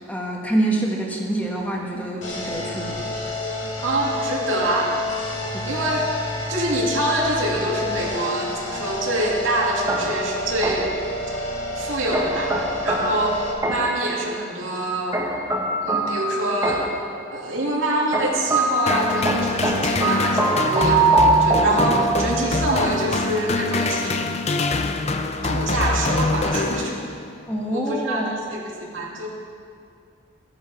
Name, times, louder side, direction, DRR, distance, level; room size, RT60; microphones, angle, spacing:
voice 1, 0.1-3.1 5.5-5.8 27.5-28.3, right 1 dB, 10° left, -2 dB, 1.4 m, -26 dB
sound 1, 2.2-13.5, left 2 dB, 70° left, 2.8 m, -29 dB
voice 2, 3.8-5.0 5.6-6.0 6.5-10.9 11.7-12.5 12.8-15.2 15.8-16.9 17.3-24.7 25.4-27.1 27.7-29.3, right 2 dB, 85° right, -3 dB, 2.5 m, -25 dB
sound 2, 9.9-11.1 12.1-14.1 15.1-17.1 18.1-22.4, right 2 dB, 15° right, 1.2 m, -23 dB
sound 3, 18.9-27.4, left 3 dB, 35° left, 0.6 m, -24 dB
15.5 x 10.0 x 4.9 m, 2.4 s
head